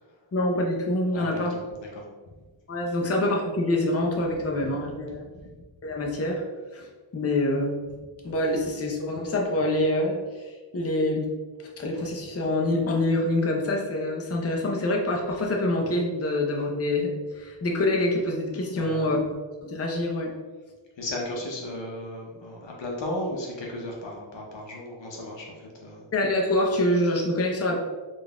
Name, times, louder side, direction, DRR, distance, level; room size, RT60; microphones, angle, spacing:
voice 1, 0.3-1.6 2.7-5.2 5.8-6.4 6.7-6.9 7.1-7.8 8.2-11.3 11.8-20.3 26.1-27.8, left 1 dB, 30° left, 0 dB, 0.6 m, -26 dB
voice 2, 1.1-1.6 1.9-2.0 18.7-19.0 21.0-26.0, left 1 dB, 70° left, -1 dB, 0.8 m, -35 dB
3.8 x 2.5 x 3.4 m, 1.3 s
wide cardioid pair, 95°, 46 cm